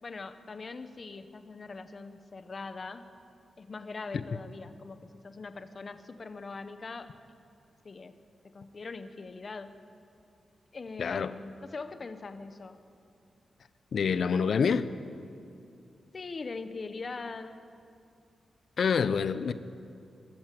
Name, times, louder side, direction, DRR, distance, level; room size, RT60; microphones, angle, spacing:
voice 1, 0.0-3.1 3.6-7.1 7.8-8.1 8.5-9.7 10.7-12.8 16.1-17.6, left 4 dB, 40° left, 1.3 m, -41 dB
voice 2, 11.0-11.3 13.9-14.9 18.8-19.5, left 6 dB, 65° left, 0.8 m, -26 dB
26.0 x 13.5 x 7.7 m
wide cardioid pair, 110°, 0 cm